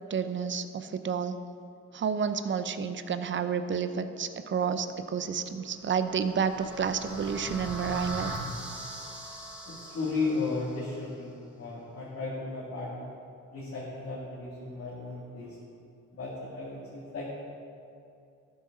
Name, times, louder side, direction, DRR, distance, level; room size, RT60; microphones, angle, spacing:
voice 1, 0.1-1.4 1.9-8.3, right 6 dB, 40° right, 10 dB, 0.6 m, -30 dB
sound 1, 5.7-10.8, right 1 dB, 5° right, 2.8 m, -40 dB
voice 2, 9.6-11.3 11.6-13.0 13.5-15.5 16.1-17.3, left 3 dB, 55° left, -7 dB, 2.2 m, -35 dB
13.0 x 8.1 x 3.8 m, 2.6 s
cardioid pair, 90°, 30 cm